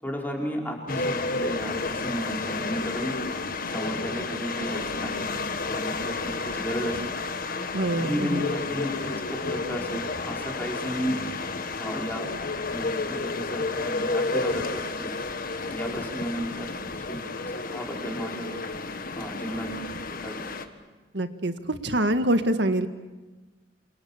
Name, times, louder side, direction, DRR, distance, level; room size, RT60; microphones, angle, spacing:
voice 1, 0.0-3.1 3.7-7.1 8.0-11.1 11.8-12.3 12.7-15.1 15.7-16.7 17.0-18.5 19.2-19.7 20.2-20.5, equal, 10° left, -1 dB, 5.2 m, -33 dB
sound 1, 0.9-20.7, left 3 dB, 50° left, 1.6 m, -31 dB
voice 2, 7.7-8.4 21.1-21.5 21.8-22.9, right 1 dB, 70° right, 9 dB, 1.8 m, -24 dB
28.0 x 28.0 x 7.3 m, 1.2 s
head